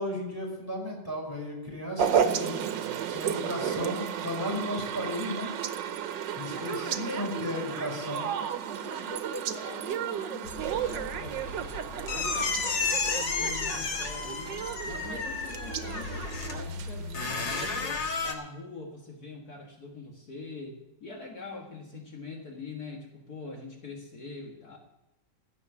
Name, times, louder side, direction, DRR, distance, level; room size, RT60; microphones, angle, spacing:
voice 1, 0.0-2.6 3.1-5.5 6.4-8.3, left 1 dB, 10° right, -2 dB, 5.4 m, -34 dB
sound 1, 2.0-17.7, right 8 dB, 85° right, 1.5 m, -33 dB
voice 2, 2.1-3.1 6.5-7.4 8.6-24.8, left 3 dB, 55° left, 0 dB, 2.1 m, -44 dB
sound 2, 10.4-18.3, left 4 dB, 85° left, 2.3 m, -33 dB
15.5 x 6.5 x 9.6 m, 0.91 s
omnidirectional pair, 1.9 m